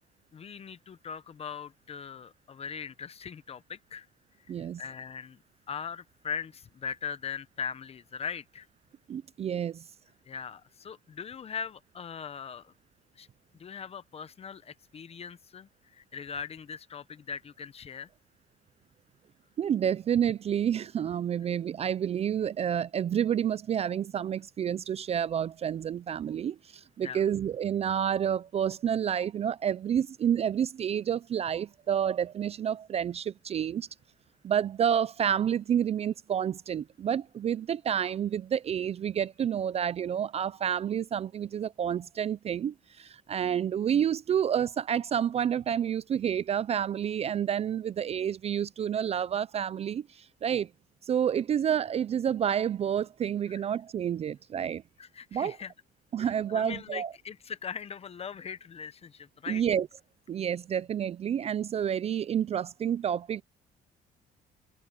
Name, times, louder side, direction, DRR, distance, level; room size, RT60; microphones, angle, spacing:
voice 1, 0.3-4.1 4.5-5.4 5.7-8.7 10.3-12.7 13.2-13.3 13.6-18.1 27.0-27.2 53.5-53.6 55.0-55.7 56.2-59.6, left 7 dB, 35° left, 0.9 m, -40 dB
voice 2, 4.5-4.8 9.1-9.8 19.6-33.9 34.4-50.7 51.0-54.8 55.3-55.6 56.1-57.1 59.5-59.9 60.3-63.4, right 9 dB, 40° right, 0.4 m, -29 dB
cardioid pair, 110°, 17 cm